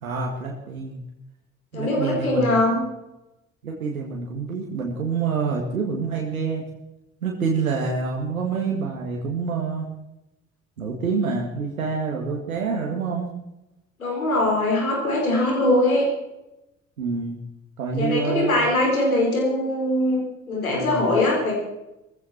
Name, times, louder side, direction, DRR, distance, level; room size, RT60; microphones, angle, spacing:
voice 1, 0.0-1.0 1.7-2.5 3.6-6.6 7.2-9.9 10.8-13.3 17.0-17.4 17.8-18.5 20.7-21.1, right 5 dB, 80° right, -1 dB, 2.0 m, -27 dB
voice 2, 1.7-2.8 14.0-16.1 17.9-20.2 20.5-21.5, left 1 dB, 80° left, -1 dB, 4.7 m, -21 dB
20.5 x 15.0 x 4.5 m, 0.91 s
figure-of-eight pair, 50°, 41 cm